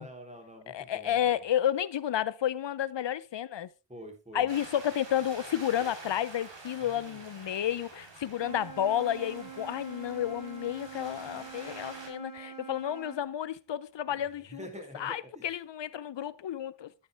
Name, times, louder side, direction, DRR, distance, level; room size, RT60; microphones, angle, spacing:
voice 1, 0.0-1.4 3.9-4.5 6.8-7.2 14.1-15.5, right 1 dB, 15° right, 3.3 m, -47 dB
voice 2, 0.7-3.7 4.3-14.7 14.9-16.9, left 10 dB, 80° left, 0.7 m, -31 dB
sound 1, 4.5-12.1, right 3 dB, 85° right, 3.5 m, -48 dB
Wind instrument woodwind instrument, 8.3-13.3, right 6 dB, 50° right, 2.6 m, -46 dB
10.5 x 9.4 x 3.4 m
wide cardioid pair, 65°, 43 cm